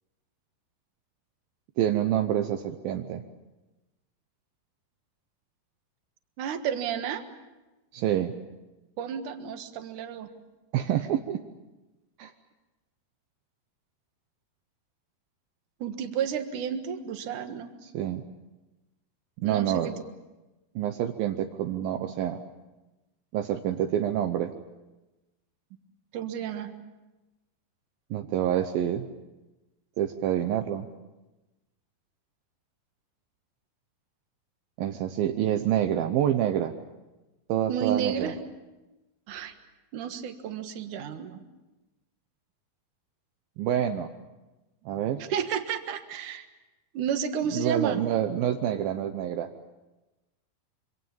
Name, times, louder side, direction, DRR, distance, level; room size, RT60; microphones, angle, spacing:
voice 1, 1.8-3.2 7.9-8.4 10.7-11.4 12.2-12.3 17.8-18.3 19.4-19.9 20.8-22.4 23.3-24.5 28.1-29.1 30.0-30.9 34.8-36.7 37.5-38.3 43.6-44.1 44.9-45.2 47.5-49.5, right 11 dB, 80° right, 6 dB, 2.7 m, -27 dB
voice 2, 6.4-7.2 9.0-10.3 15.8-17.7 19.4-19.9 26.1-26.7 37.7-38.3 39.3-39.5 39.9-41.4 45.3-46.5 46.9-48.0, right 8 dB, 60° right, 7 dB, 2.9 m, -31 dB
26.5 x 25.0 x 7.2 m, 1.1 s
omnidirectional pair, 4.2 m